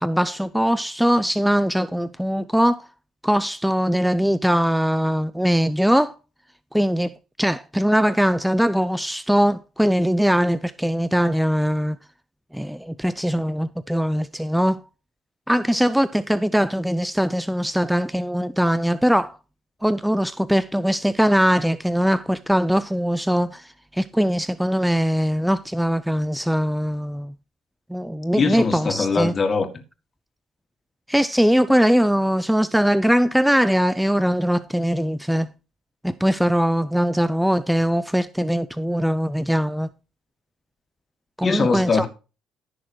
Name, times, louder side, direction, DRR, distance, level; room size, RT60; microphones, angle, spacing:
voice 1, 0.0-2.9 3.2-6.2 6.7-7.1 7.4-12.0 12.5-14.8 15.5-19.4 19.8-27.3 27.9-29.3 31.1-35.5 36.0-39.9 41.4-42.1, equal, ahead, 0.4 m, -21 dB
voice 2, 28.4-29.7 41.4-42.1, left 4 dB, 30° left, 1.9 m, -22 dB
14.5 x 6.4 x 3.1 m
cardioid pair, 130°, 0 cm